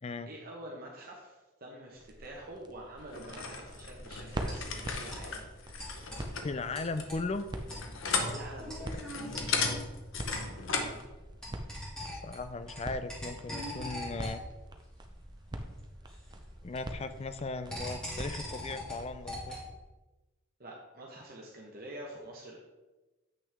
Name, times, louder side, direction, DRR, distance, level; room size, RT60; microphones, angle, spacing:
voice 1, 0.2-5.5 8.2-8.9 15.5-15.6 20.6-22.6, right 1 dB, 45° right, -1 dB, 1.0 m, -46 dB
sound 1, 1.9-19.5, right 1 dB, 20° right, 0.6 m, -45 dB
sound 2, 3.1-11.0, left 4 dB, 65° left, 0.9 m, -36 dB
sound 3, 3.6-19.8, equal, 5° left, 2.0 m, -44 dB
voice 2, 6.4-7.4 8.9-9.0 12.0-14.4 16.6-19.6, left 3 dB, 30° left, 11 dB, 0.4 m, -37 dB
8.3 x 6.1 x 3.5 m, 1.2 s
head